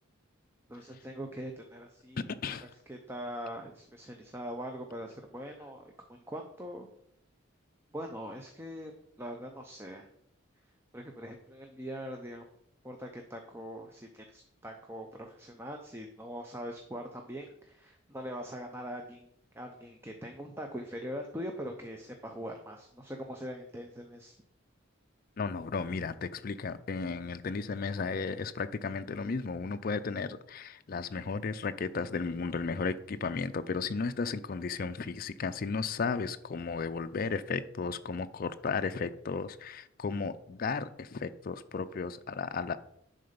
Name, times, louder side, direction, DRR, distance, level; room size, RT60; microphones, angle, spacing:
voice 1, 0.7-2.4 2.9-6.9 7.9-8.9 9.2-10.1 10.9-12.4 12.8-19.3 19.5-24.4, equal, 10° right, 3 dB, 0.6 m, -42 dB
voice 2, 2.2-2.7 25.4-42.8, left 4 dB, 45° left, 10 dB, 0.4 m, -34 dB
10.5 x 3.9 x 5.2 m, 0.75 s
head